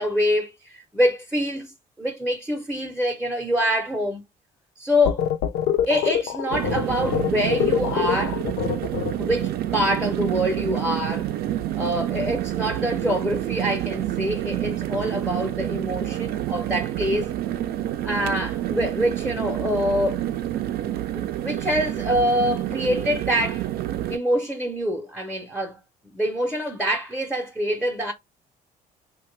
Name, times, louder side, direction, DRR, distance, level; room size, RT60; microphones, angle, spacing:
voice 1, 0.0-4.2 4.8-5.3 5.9-8.4 9.2-11.3 11.8-17.3 18.0-20.2 21.1-23.8 24.1-25.8 26.1-28.1, equal, 5° right, 0.6 m, -25 dB
sound 1, 5.0-9.5, left 10 dB, 70° left, 0.5 m, -25 dB
sound 2, 6.5-24.2, right 13 dB, 65° right, 0.4 m, -28 dB
2.8 x 2.2 x 3.1 m
cardioid pair, 110°, 17 cm